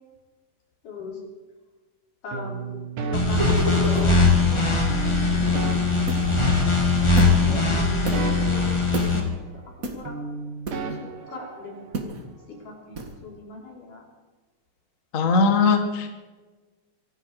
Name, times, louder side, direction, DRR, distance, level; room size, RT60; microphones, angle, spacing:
voice 1, 0.8-1.2 2.2-2.8 3.1-5.6 7.3-9.4 9.9-10.2 11.3-12.0 12.5-14.1, left 3 dB, 65° left, -1 dB, 5.3 m, -39 dB
sound 1, 2.3-4.3 4.9-7.2 7.5-9.8 10.1-12.1, right 4 dB, 65° right, 3.1 m, -35 dB
sound 2, 3.1-9.2, left 3 dB, 15° left, 1.1 m, -20 dB
sound 3, 3.4-4.1 6.1-6.4 7.2-7.4 8.1-8.2 8.9-9.2 9.8-10.0 10.6-11.0 11.9-12.2 12.9-13.2, right 3 dB, 35° right, 1.5 m, -30 dB
voice 2, 15.1-16.1, left 4 dB, 40° left, 5 dB, 1.2 m, -20 dB
25.0 x 12.0 x 4.9 m, 1.3 s
omnidirectional pair, 3.9 m